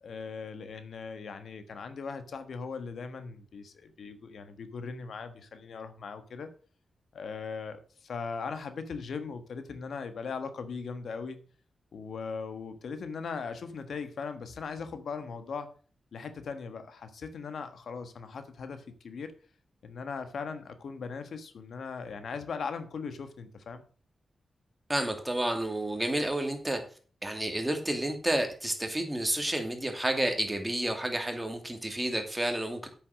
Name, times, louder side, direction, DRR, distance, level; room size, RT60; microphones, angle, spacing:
voice 1, 0.0-6.5 7.1-11.4 11.9-15.7 16.1-19.3 19.8-23.8, left 5 dB, 80° left, 9 dB, 1.3 m, -39 dB
voice 2, 24.9-26.8 27.2-32.9, right 1 dB, 10° right, 4 dB, 2.4 m, -30 dB
8.2 x 7.1 x 6.4 m, 0.41 s
cardioid pair, 85°, 0 cm